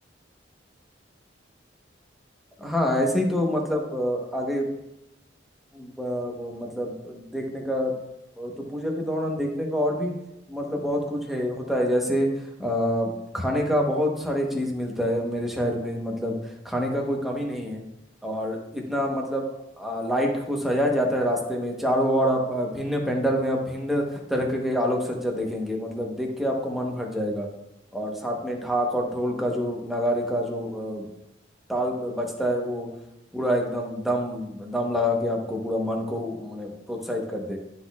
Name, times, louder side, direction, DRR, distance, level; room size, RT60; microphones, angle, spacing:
voice 1, 2.6-4.7 5.7-8.0 8.4-10.1 10.5-12.3 12.6-16.4 16.6-17.8 18.2-19.4 19.8-27.5 27.9-31.1 31.7-32.9 33.3-37.6, equal, ahead, 0 dB, 0.9 m, -26 dB
12.0 x 4.0 x 2.3 m, 0.87 s
head